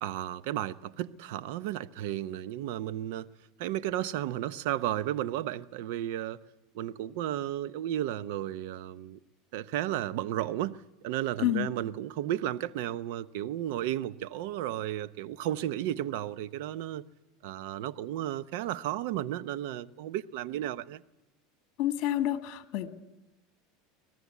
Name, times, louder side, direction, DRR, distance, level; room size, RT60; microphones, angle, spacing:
voice 1, 0.0-3.3 3.6-6.4 6.7-9.2 9.5-17.0 17.4-21.0, right 12 dB, 70° right, 0.7 m, -33 dB
voice 2, 11.4-11.7 21.8-22.9, left 13 dB, 55° left, 1.7 m, -29 dB
24.0 x 18.5 x 8.3 m
supercardioid pair, 125°, 0 cm